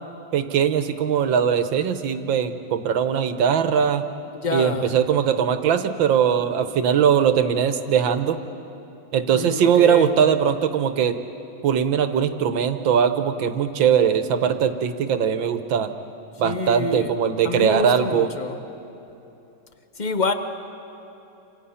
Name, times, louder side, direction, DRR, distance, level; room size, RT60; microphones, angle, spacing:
voice 1, 0.3-4.0 4.5-8.4 9.1-11.2 11.6-15.9 16.4-18.3, right 8 dB, 70° right, 9 dB, 1.8 m, -20 dB
voice 2, 4.3-4.9 9.3-10.2 16.4-17.1 17.4-18.6 20.0-20.3, left 3 dB, 45° left, 8 dB, 0.6 m, -27 dB
28.0 x 26.5 x 5.7 m, 2.9 s
omnidirectional pair, 2.2 m